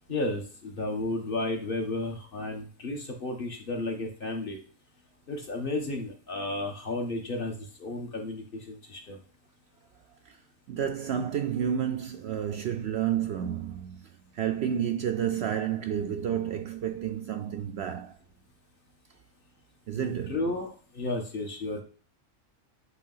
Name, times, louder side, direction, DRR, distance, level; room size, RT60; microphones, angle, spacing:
voice 1, 0.1-4.6 5.3-7.5 7.8-9.2 19.9-21.8, left 2 dB, 45° left, 1.4 m, -33 dB
voice 2, 10.7-14.0 14.4-18.1 19.9-20.4, right 9 dB, 65° right, 0.7 m, -30 dB
8.1 x 3.1 x 5.5 m
omnidirectional pair, 1.4 m